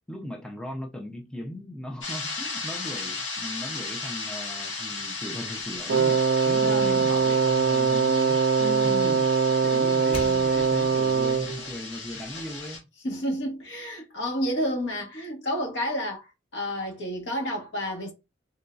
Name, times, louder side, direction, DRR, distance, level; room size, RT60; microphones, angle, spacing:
voice 1, 0.1-8.5 8.8-12.9, equal, 5° left, 0.4 m, -38 dB
sound 1, 2.0-12.8, left 4 dB, 90° left, 1.8 m, -35 dB
sound 2, 5.6-8.8 9.2-11.0, left 1 dB, 30° left, 0.9 m, -45 dB
Wind instrument woodwind instrument, 5.9-11.6, right 5 dB, 80° right, 0.3 m, -22 dB
voice 2, 6.6-7.1 8.6-9.2 13.0-18.1, equal, 65° left, 1.5 m, -30 dB
3.7 x 2.7 x 2.3 m
head